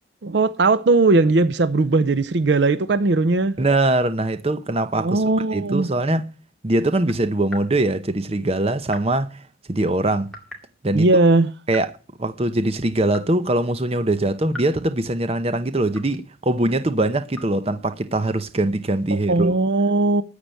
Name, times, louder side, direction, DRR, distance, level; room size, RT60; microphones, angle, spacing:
voice 1, 0.2-3.6 5.0-5.9 10.9-11.5 19.1-20.2, right 3 dB, 65° right, 0.6 m, -18 dB
voice 2, 3.6-5.2 5.5-6.2 6.6-9.4 9.7-10.3 10.8-11.1 11.7-11.9 12.2-19.6, right 2 dB, 30° right, 0.7 m, -22 dB
sound 1, 7.5-7.7 8.9-9.2 10.3-10.7 11.7-11.9 13.1-13.4 14.5-14.8 15.9-16.3 17.3-17.6, left 1 dB, 5° left, 2.3 m, -40 dB
13.5 x 4.8 x 9.0 m
head